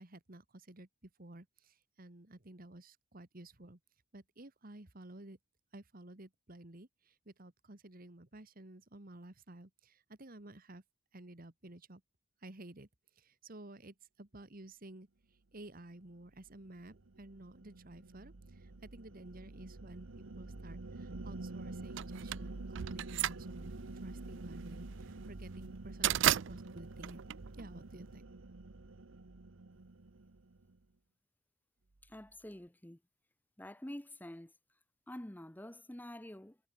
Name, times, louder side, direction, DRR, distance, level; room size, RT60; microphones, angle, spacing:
voice 1, 0.0-3.8 4.1-5.4 5.7-10.8 11.1-12.0 12.4-12.9 13.2-15.1 15.5-27.2 27.5-28.3, right 1 dB, 45° right, 1.9 m, -53 dB
sound 1, 16.3-30.8, right 2 dB, 90° right, 1.1 m, -47 dB
sound 2, 22.0-28.1, right 12 dB, 65° right, 0.4 m, -35 dB
voice 2, 32.0-33.0 33.6-34.5 35.1-36.6, left 1 dB, 10° left, 0.9 m, -47 dB
head